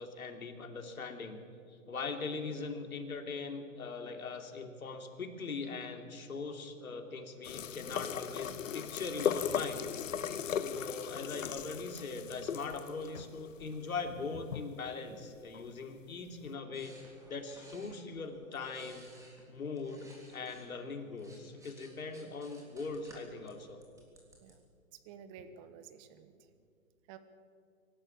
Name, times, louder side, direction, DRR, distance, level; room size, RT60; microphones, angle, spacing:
voice 1, 0.0-1.4 1.7-9.8 10.5-17.0 17.3-19.0 19.5-23.8, left 4 dB, 80° left, 5 dB, 3.0 m, -41 dB
sound 1, 7.4-14.8 15.5-15.7, left 8 dB, 65° left, 1.2 m, -38 dB
sound 2, 16.7-20.7 21.0-24.5, right 1 dB, 5° right, 3.4 m, -59 dB
voice 2, 25.0-26.3 27.1-27.2, right 7 dB, 25° right, 11 dB, 1.3 m, -52 dB
23.5 x 12.5 x 8.6 m, 2.3 s
hypercardioid pair, 140°, 42 cm